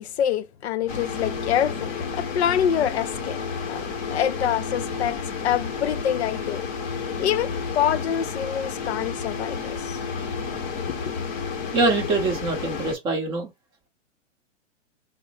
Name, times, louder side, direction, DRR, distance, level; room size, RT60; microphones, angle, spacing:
voice 1, 0.0-3.4 3.7-3.8 4.1-6.6 7.2-10.0 10.9-11.0, left 10 dB, 55° left, 0.6 m, -26 dB
sound 1, 0.9-12.9, left 5 dB, 25° left, 0.8 m, -31 dB
voice 2, 11.7-13.5, right 3 dB, 15° right, 0.7 m, -24 dB
3.6 x 2.0 x 4.0 m
hypercardioid pair, 140°, 39 cm